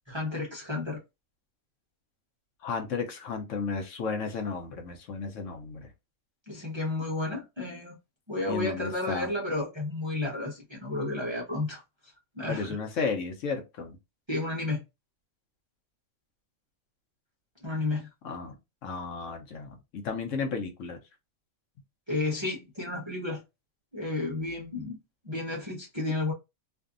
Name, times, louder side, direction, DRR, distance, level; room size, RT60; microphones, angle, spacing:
voice 1, 0.1-1.0 6.5-7.9 8.3-12.8 14.3-14.8 17.6-18.1 22.1-23.4 23.9-25.0 25.2-26.3, left 2 dB, 30° right, 0.5 m, -32 dB
voice 2, 2.6-5.9 8.5-9.3 12.5-14.0 18.2-18.6 18.8-21.0, left 5 dB, 70° left, 0.9 m, -33 dB
2.6 x 2.3 x 2.4 m
omnidirectional pair, 1.4 m